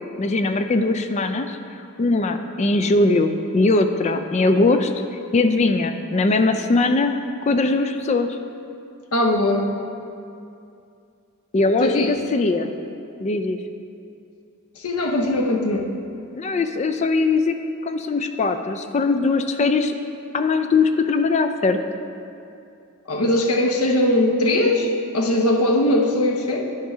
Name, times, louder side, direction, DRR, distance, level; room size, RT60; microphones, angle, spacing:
voice 1, 0.2-1.6 2.0-4.9 5.3-7.2 7.5-8.3 11.5-12.7 13.2-13.6 16.3-17.6 17.8-19.9 20.3-21.8, left 3 dB, 30° left, 8 dB, 0.3 m, -20 dB
voice 2, 9.1-9.7 11.8-12.1 14.7-15.9 23.1-26.6, left 1 dB, 85° left, 2 dB, 0.8 m, -20 dB
10.0 x 3.6 x 5.5 m, 2.5 s
head